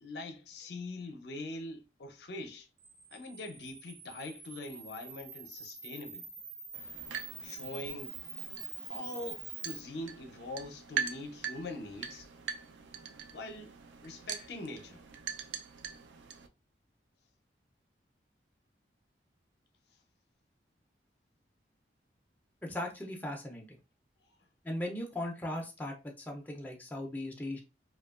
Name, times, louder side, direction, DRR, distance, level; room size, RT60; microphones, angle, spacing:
voice 1, 0.0-2.7 3.1-6.3 7.4-8.2 8.8-12.3 13.3-13.8 14.0-15.0, left 2 dB, 70° left, 0.5 m, -43 dB
Camera, 2.8-9.8, right 5 dB, 65° right, 0.7 m, -46 dB
sound 1, 6.7-16.5, right 8 dB, 85° right, 0.3 m, -42 dB
voice 2, 22.6-23.6 24.6-27.6, left 1 dB, 10° left, 0.3 m, -38 dB
2.7 x 2.2 x 2.3 m
head